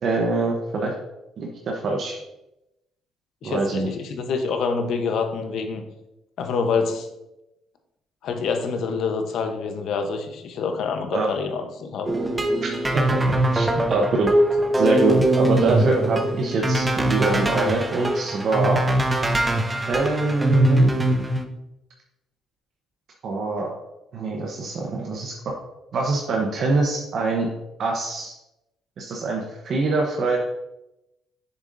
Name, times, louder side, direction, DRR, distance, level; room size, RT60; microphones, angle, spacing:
voice 1, 0.0-0.9 1.4-2.2 3.4-3.9 11.1-11.3 12.9-14.3 14.8-18.8 19.9-20.9 23.2-23.7 24.1-25.3 25.9-27.5 27.8-28.3 29.0-30.4, right 3 dB, 55° right, 0 dB, 0.9 m, -24 dB
voice 2, 3.4-5.8 6.4-7.1 8.2-12.1, left 5 dB, 70° left, 6 dB, 0.9 m, -26 dB
sound 1, 12.0-21.4, right 1 dB, 15° right, 0.7 m, -22 dB
6.9 x 6.5 x 2.6 m, 0.92 s
cardioid pair, 105°, 0 cm